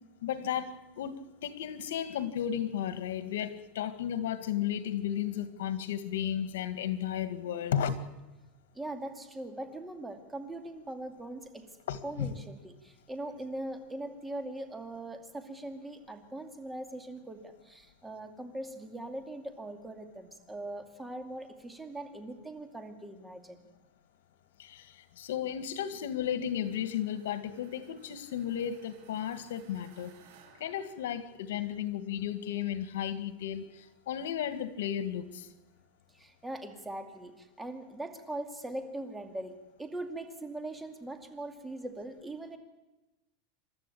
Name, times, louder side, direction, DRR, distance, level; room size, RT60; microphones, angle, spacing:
voice 1, 0.2-1.2 1.4-8.0 11.9-12.3 24.6-30.1 30.6-35.5, left 10 dB, 85° left, 11 dB, 1.8 m, -34 dB
voice 2, 8.7-11.6 12.0-23.7 36.1-42.6, right 1 dB, 10° right, 6 dB, 2.4 m, -41 dB
sound 1, 26.4-31.6, right 7 dB, 65° right, 7.9 m, -61 dB
28.0 x 13.0 x 8.6 m, 1.0 s
supercardioid pair, 145°, 0 cm